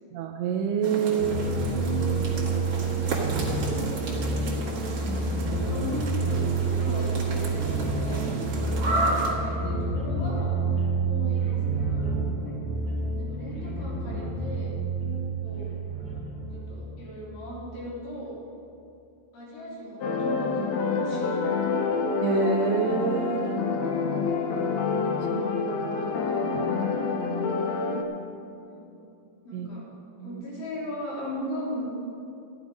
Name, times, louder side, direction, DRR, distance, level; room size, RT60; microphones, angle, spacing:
voice 1, 0.1-1.5 5.0-5.2 22.2-23.7 25.2-25.5 26.0-26.9 29.5-29.7 30.2-30.5, right 7 dB, 85° right, 3 dB, 2.7 m, -28 dB
sound 1, 0.8-9.3, right 2 dB, 45° right, 2.6 m, -32 dB
sound 2, 1.2-17.5, right 3 dB, 20° left, 2.5 m, -28 dB
voice 2, 2.8-4.7 5.0-10.6 11.1-12.2 13.2-14.7 15.4-15.7 16.5-18.4 19.3-21.7 28.7-29.0 29.4-29.8 30.2-31.8, equal, 60° left, -6 dB, 5.2 m, -38 dB
sound 3, 20.0-28.0, left 4 dB, 85° left, 1.5 m, -27 dB
14.5 x 11.5 x 5.1 m, 2.6 s
omnidirectional pair, 4.5 m